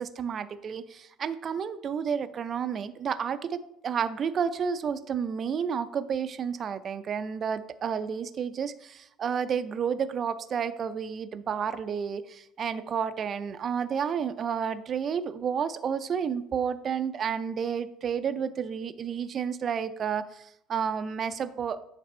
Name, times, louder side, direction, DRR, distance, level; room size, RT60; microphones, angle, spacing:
voice 1, 0.0-21.8, right 7 dB, 40° right, 12 dB, 0.4 m, -31 dB
9.3 x 3.4 x 4.3 m, 0.79 s
supercardioid pair, 110°, 0 cm